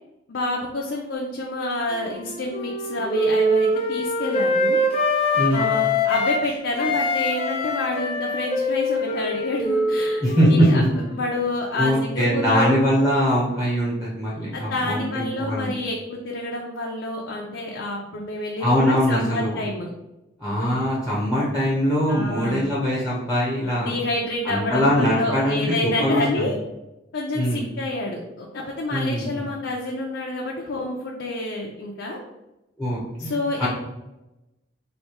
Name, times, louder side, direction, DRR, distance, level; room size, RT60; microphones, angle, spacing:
voice 1, 0.3-4.8 5.5-12.8 14.5-19.9 22.1-22.7 23.7-26.6 27.1-32.2 33.2-33.7, left 2 dB, 75° left, -1 dB, 0.6 m, -28 dB
Wind instrument woodwind instrument, 1.9-6.4 6.7-11.2, left 1 dB, 30° left, 0.6 m, -24 dB
voice 2, 5.3-5.7 10.2-10.8 11.7-15.7 18.6-19.6 20.4-24.0 24.4-26.5 27.3-27.6 28.9-29.5 32.8-33.7, equal, 5° right, -7 dB, 0.9 m, -22 dB
3.3 x 2.7 x 4.3 m, 0.95 s
head